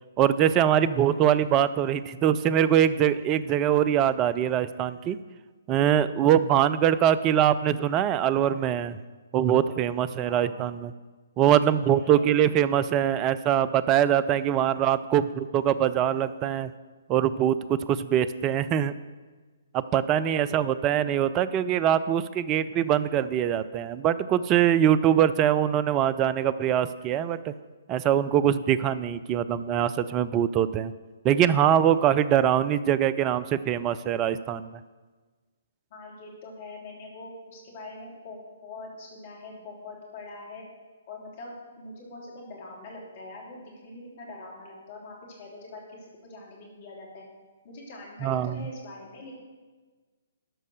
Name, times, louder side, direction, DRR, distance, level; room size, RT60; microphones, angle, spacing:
voice 1, 0.2-5.2 5.7-9.0 9.3-10.9 11.4-16.7 17.1-18.9 19.7-27.5 27.9-30.9 31.2-34.7 48.2-48.5, right 10 dB, 25° right, 15 dB, 0.4 m, -23 dB
voice 2, 10.2-10.8 11.9-12.3 20.1-20.9 35.9-40.6 41.1-47.2 47.6-49.4, left 2 dB, 40° left, -2 dB, 3.3 m, -43 dB
12.5 x 5.4 x 6.5 m, 1.3 s
figure-of-eight pair, 130°, 0 cm